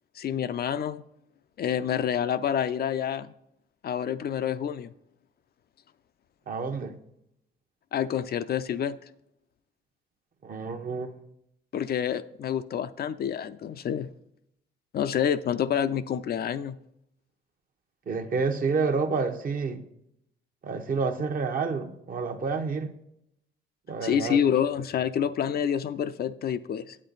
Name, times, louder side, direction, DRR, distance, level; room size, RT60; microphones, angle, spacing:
voice 1, 0.2-1.0 1.6-3.3 3.8-4.9 7.9-9.0 11.7-14.1 14.9-16.8 24.0-27.0, left 9 dB, 50° left, 12 dB, 0.5 m, -28 dB
voice 2, 6.5-7.0 10.4-11.3 18.1-19.8 20.6-23.0 23.9-24.4, right 4 dB, 45° right, 5 dB, 0.9 m, -29 dB
8.7 x 8.1 x 3.9 m, 0.78 s
cardioid pair, 90°, 20 cm